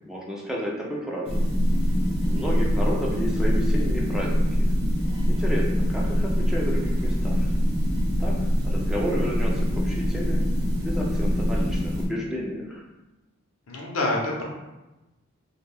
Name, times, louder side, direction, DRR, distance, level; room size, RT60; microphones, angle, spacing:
voice 1, 0.0-1.4 2.2-4.7 5.3-7.5 8.2-8.4 8.6-10.4 10.8-12.8, equal, 5° right, -4 dB, 0.3 m, -32 dB
sound 1, 1.2-12.1, equal, 50° right, 0.8 m, -23 dB
voice 2, 13.7-14.4, left 2 dB, 75° left, -1 dB, 0.6 m, -26 dB
2.4 x 2.1 x 3.3 m, 1.0 s
head